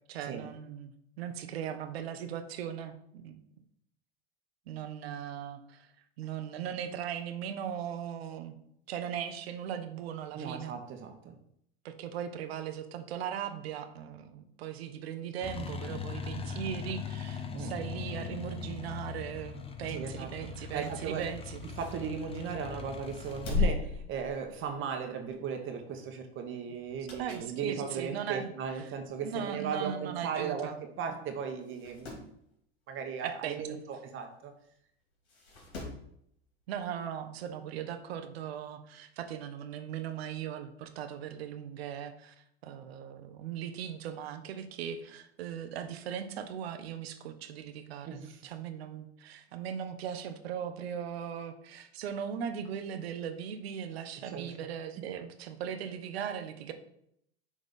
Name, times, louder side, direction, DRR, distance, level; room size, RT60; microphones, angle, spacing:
voice 1, 0.1-0.9 1.2-3.4 4.7-5.9 6.2-8.5 8.9-10.7 11.8-21.6 27.2-28.5 28.8-28.9 29.2-30.8 33.2-33.8 36.7-42.3 42.6-56.7, right 8 dB, 70° right, 8 dB, 0.9 m, -38 dB
voice 2, 10.3-11.3 17.5-17.8 19.9-20.3 20.7-21.2 21.8-32.3 32.9-34.5 48.1-48.4 54.2-54.5, right 6 dB, 40° right, 4 dB, 1.1 m, -37 dB
sound 1, 15.4-23.6, left 6 dB, 20° left, 0.8 m, -40 dB
sound 2, 20.6-22.5 23.0-24.9 25.3-25.5 26.8-27.6 28.0-28.1 29.0-29.1 29.4-29.5 29.6-29.7 30.6-30.8 31.1-31.2 31.6-32.3 34.1-34.2 35.3-36.1 37.4-37.5, left 4 dB, 75° left, 2.8 m, -37 dB
6.4 x 3.6 x 5.2 m, 0.72 s
hypercardioid pair, 95°, 32 cm